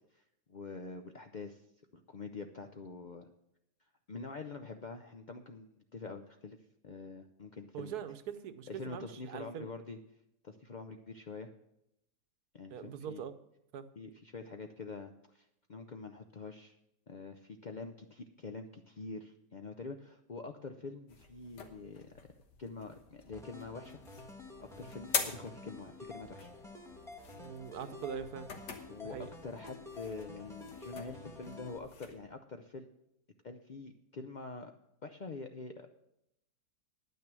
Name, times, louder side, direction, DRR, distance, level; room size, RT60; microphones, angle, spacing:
voice 1, 0.5-1.6 1.9-3.3 4.1-6.6 6.8-7.9 8.7-10.0 10.4-11.5 12.5-13.2 14.0-16.8 17.1-22.1 22.6-24.0 24.6-26.5 28.9-32.9 33.4-34.7 35.0-35.9, left 4 dB, 65° left, 5 dB, 0.4 m, -45 dB
voice 2, 7.7-9.7 12.7-13.3 13.7-13.9 27.3-28.5 29.0-29.3, right 8 dB, 70° right, 11 dB, 1.3 m, -42 dB
sound 1, 21.1-32.2, left 6 dB, 85° left, 1.9 m, -44 dB
sound 2, 23.3-31.8, left 3 dB, ahead, 1.2 m, -50 dB
10.0 x 9.4 x 6.0 m, 0.81 s
omnidirectional pair, 1.8 m